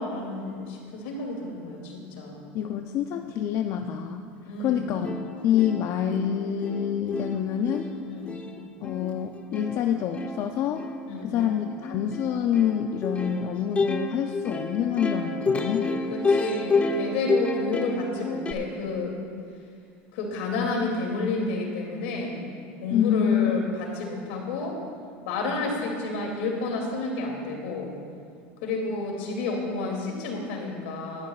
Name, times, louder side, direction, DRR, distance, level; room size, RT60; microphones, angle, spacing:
voice 1, 0.0-2.4 4.4-5.0 8.1-8.4 11.1-11.3 16.1-19.1 20.1-22.4 22.8-24.8 25.2-27.9 28.6-31.3, left 3 dB, 80° left, 0 dB, 2.7 m, -30 dB
voice 2, 2.5-4.2 4.6-5.1 5.4-7.9 8.8-10.9 11.2-15.9 22.9-23.7, left 9 dB, 50° left, 5 dB, 0.6 m, -26 dB
Plucked string instrument, 4.6-4.7 5.0-18.5, left 3 dB, 20° left, 0.9 m, -30 dB
18.5 x 12.0 x 2.5 m, 2.3 s
supercardioid pair, 110°, 6 cm